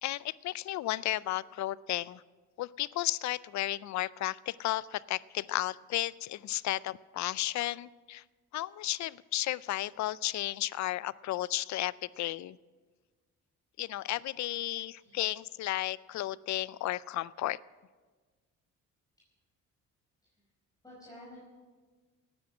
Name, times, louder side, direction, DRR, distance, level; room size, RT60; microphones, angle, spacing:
voice 1, 0.0-2.2 2.6-8.2 8.5-12.6 13.8-17.6, left 15 dB, 65° left, 20 dB, 0.4 m, -33 dB
voice 2, 15.0-15.4 20.8-21.4, left 1 dB, 10° left, -6 dB, 4.9 m, -51 dB
18.5 x 9.8 x 6.1 m, 1.4 s
cardioid pair, 90°, 30 cm